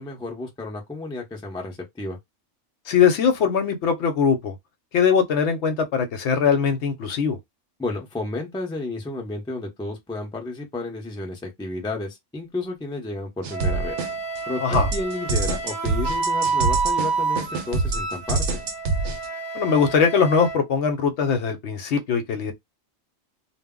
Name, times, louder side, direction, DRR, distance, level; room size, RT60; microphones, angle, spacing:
voice 1, 0.0-2.2 7.8-14.0 14.5-18.4, left 2 dB, 5° left, 0.4 m, -32 dB
voice 2, 2.9-4.5 4.9-7.4 14.6-14.9 19.5-22.5, left 6 dB, 70° left, 0.9 m, -21 dB
sound 1, 13.4-14.4 14.7-19.3, right 3 dB, 75° right, 0.9 m, -25 dB
Wind instrument woodwind instrument, 13.5-20.6, right 4 dB, 45° right, 0.7 m, -28 dB
2.1 x 2.0 x 3.5 m
omnidirectional pair, 1.3 m